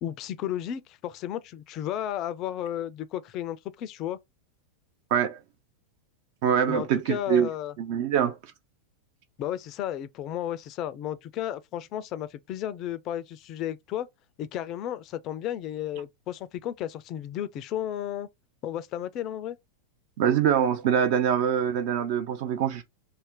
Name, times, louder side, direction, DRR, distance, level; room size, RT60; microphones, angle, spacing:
voice 1, 0.0-4.2 6.7-7.7 9.4-14.1 14.4-18.3 18.6-19.6, left 11 dB, 35° left, 0.3 m, -33 dB
voice 2, 6.4-7.5 7.8-8.3 20.2-22.8, right 8 dB, 45° right, 0.4 m, -24 dB
2.5 x 2.1 x 3.6 m
figure-of-eight pair, 90°, 0 cm